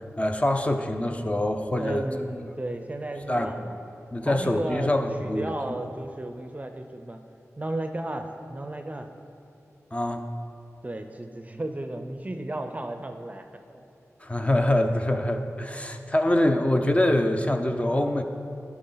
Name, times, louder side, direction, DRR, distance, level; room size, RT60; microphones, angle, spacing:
voice 1, 0.2-2.0 3.3-3.5 4.1-5.5 9.9-10.3 14.2-18.2, left 1 dB, 25° left, 5 dB, 0.6 m, -24 dB
voice 2, 1.8-3.7 4.2-4.9 5.2-7.2 7.6-9.1 10.8-13.4 13.7-13.8, right 1 dB, 30° right, 6 dB, 0.5 m, -34 dB
11.5 x 6.0 x 3.9 m, 2.7 s
cardioid pair, 55°, 5 cm